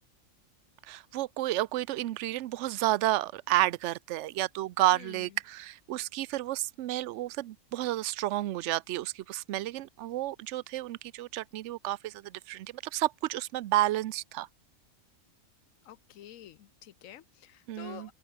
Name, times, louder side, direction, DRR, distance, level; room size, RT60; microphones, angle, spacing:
voice 1, 0.9-14.5 17.7-18.1, right 15 dB, 70° right, 0.8 m, -31 dB
voice 2, 4.9-5.4 15.8-18.1, left 12 dB, 80° left, 1.1 m, -49 dB
open air
omnidirectional pair, 1.4 m